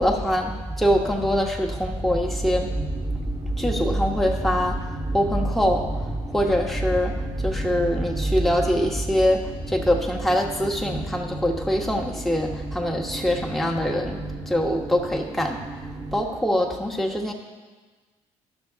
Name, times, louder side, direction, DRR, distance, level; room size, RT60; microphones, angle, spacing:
voice 1, 0.0-17.3, equal, ahead, 0 dB, 1.3 m, -24 dB
sound 1, 2.2-16.2, right 3 dB, 30° right, 1.1 m, -36 dB
11.5 x 6.4 x 3.6 m, 1.4 s
figure-of-eight pair, 50°, 16 cm